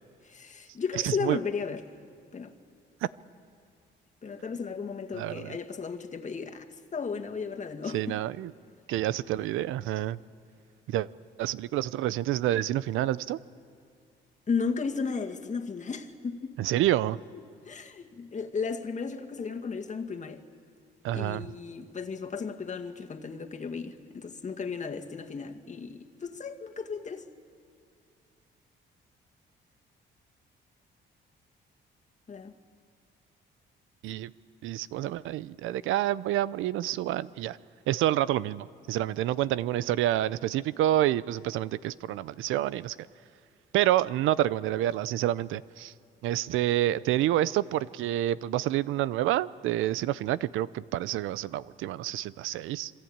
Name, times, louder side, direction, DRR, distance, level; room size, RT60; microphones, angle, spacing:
voice 1, 0.2-1.8 2.3-2.6 4.2-6.7 6.9-8.2 14.5-16.6 17.6-20.4 21.1-27.3 32.3-32.5, left 5 dB, 35° left, 2.0 m, -34 dB
voice 2, 1.0-1.4 5.1-5.5 7.9-8.5 8.9-10.2 10.9-11.1 11.4-13.4 16.6-17.2 21.0-21.5 34.0-34.3 34.6-37.6 37.9-43.0 43.7-45.9 46.2-52.9, right 13 dB, 90° right, 0.6 m, -28 dB
26.5 x 22.5 x 8.8 m
cardioid pair, 90°, 20 cm